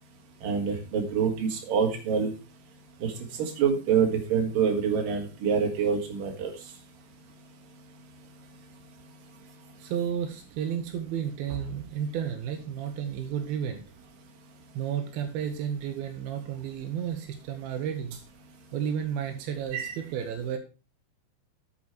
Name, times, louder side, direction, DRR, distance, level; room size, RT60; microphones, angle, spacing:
voice 1, 0.4-2.3 3.0-3.1 3.4-6.5 19.7-19.9, right 6 dB, 70° right, 3 dB, 3.4 m, -26 dB
voice 2, 9.8-13.8 14.7-18.2 18.7-20.6, right 8 dB, 90° right, 5 dB, 3.0 m, -32 dB
8.4 x 7.5 x 4.7 m, 0.32 s
omnidirectional pair, 4.2 m